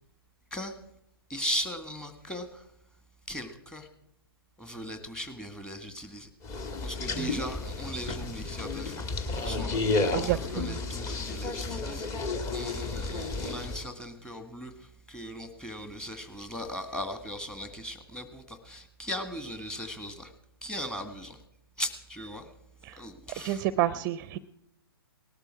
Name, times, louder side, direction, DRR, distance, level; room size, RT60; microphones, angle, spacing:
voice 1, 1.3-2.7 3.3-3.9 4.6-6.3 6.8-20.3 20.6-21.4 21.8-22.5 23.0-23.7, equal, 5° left, 9 dB, 1.8 m, -38 dB
sound 1, 6.4-13.8, left 3 dB, 25° left, 1.9 m, -32 dB
voice 2, 10.1-10.8 22.9-23.0 23.4-24.4, right 13 dB, 30° right, 16 dB, 0.6 m, -30 dB
19.0 x 12.5 x 4.7 m, 0.77 s
figure-of-eight pair, 125°, 13 cm